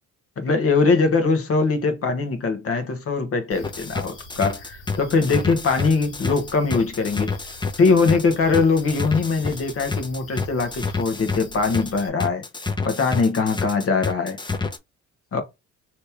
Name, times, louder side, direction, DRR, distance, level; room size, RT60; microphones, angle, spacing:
voice 1, 0.4-7.4 7.8-12.4 12.8-14.4 15.3-15.4, left 4 dB, 50° left, 1.2 m, -21 dB
sound 1, 3.5-12.1, left 1 dB, 85° left, 1.5 m, -45 dB
sound 2, 3.6-14.8, left 4 dB, 15° left, 0.7 m, -28 dB
3.2 x 2.9 x 3.4 m
cardioid pair, 90°, 30 cm